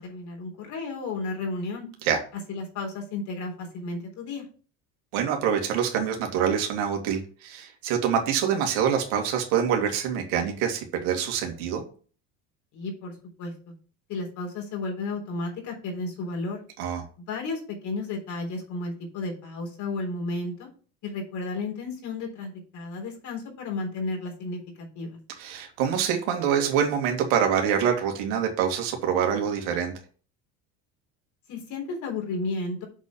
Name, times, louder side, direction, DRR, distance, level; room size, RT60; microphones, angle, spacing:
voice 1, 0.0-1.9 2.5-4.5 12.7-13.5 14.1-16.6 17.2-20.7 21.0-25.2 31.5-32.8, left 3 dB, 55° left, 0 dB, 3.8 m, -33 dB
voice 2, 5.1-11.8 16.8-17.0 25.4-29.9, right 8 dB, 80° right, 3 dB, 2.3 m, -25 dB
7.3 x 4.3 x 6.9 m, 0.40 s
supercardioid pair, 110°, 35 cm